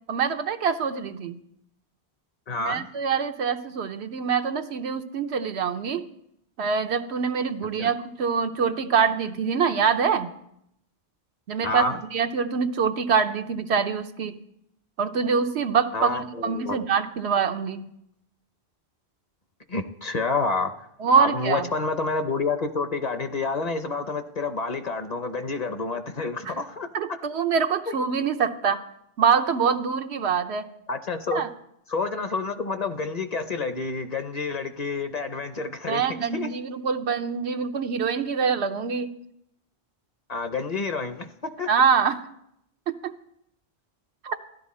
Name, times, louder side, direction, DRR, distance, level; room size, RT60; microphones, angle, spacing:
voice 1, 0.1-1.4 2.6-6.1 6.6-10.3 11.5-14.3 15.0-17.9 21.0-21.7 26.5-26.6 26.9-28.8 29.2-30.7 31.3-31.5 35.9-39.1 41.7-42.2 42.9-43.1 44.2-44.4, right 6 dB, 90° right, 8 dB, 1.0 m, -25 dB
voice 2, 2.5-2.9 7.8-7.9 11.6-12.0 15.9-16.8 19.7-20.7 21.2-26.9 27.9-28.0 30.9-31.4 31.9-36.5 40.3-41.7, left 3 dB, 45° left, 8 dB, 0.8 m, -28 dB
14.0 x 11.0 x 4.2 m, 0.76 s
omnidirectional pair, 1.1 m